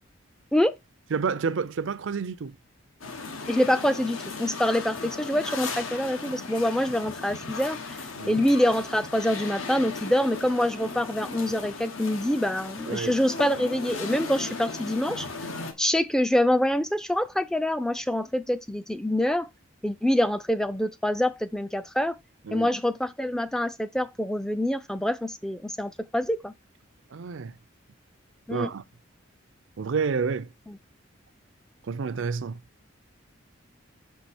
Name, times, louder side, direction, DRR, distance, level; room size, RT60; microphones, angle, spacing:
voice 1, 1.1-2.6 8.2-8.4 12.9-13.2 22.5-22.7 27.1-27.6 28.5-28.8 29.8-30.5 31.9-32.6, right 5 dB, 70° right, 0.5 m, -29 dB
sound 1, 3.0-15.7, left 3 dB, 90° left, 1.2 m, -36 dB
voice 2, 3.5-15.3 15.8-19.5 19.8-22.2 22.5-26.5 28.5-28.7 30.7-30.8, left 1 dB, 5° left, 0.3 m, -26 dB
6.7 x 4.6 x 4.2 m
head